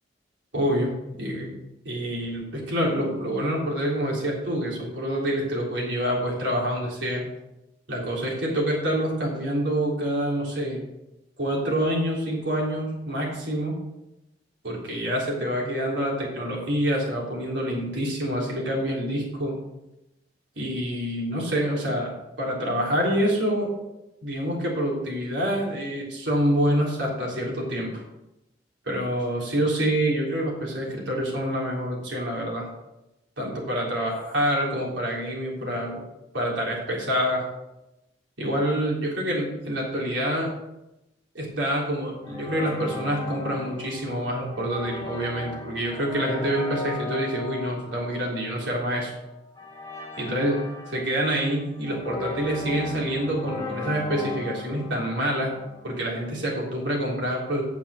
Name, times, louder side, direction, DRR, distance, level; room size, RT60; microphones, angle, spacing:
voice 1, 0.5-0.9 1.2-1.5 1.9-7.2 7.9-10.8 11.4-13.8 14.6-19.5 20.6-22.1 22.4-23.7 24.2-28.0 28.8-32.7 33.4-36.0 36.3-37.4 38.4-40.5 41.3-49.1 50.2-50.6 50.9-55.5 55.8-57.6, equal, 80° right, -3 dB, 3.7 m, -26 dB
sound 1, 42.2-56.0, left 3 dB, 20° left, 2.3 m, -37 dB
9.3 x 7.2 x 6.4 m, 0.93 s
head